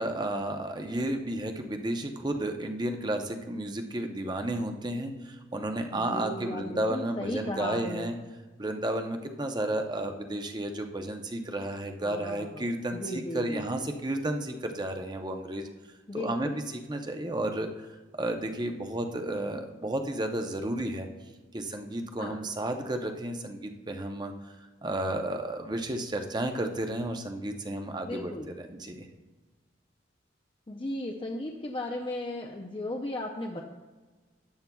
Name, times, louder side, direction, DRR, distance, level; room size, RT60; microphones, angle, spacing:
voice 1, 0.0-8.2 8.6-15.7 16.1-21.1 21.5-24.5 24.8-28.3 28.7-29.1, right 1 dB, 25° right, 5 dB, 0.7 m, -32 dB
voice 2, 5.9-8.1 12.0-13.6 16.1-16.6 22.2-22.4 28.0-28.5 30.7-33.6, left 1 dB, 25° left, 1 dB, 0.5 m, -36 dB
13.0 x 9.3 x 2.3 m, 1.3 s
head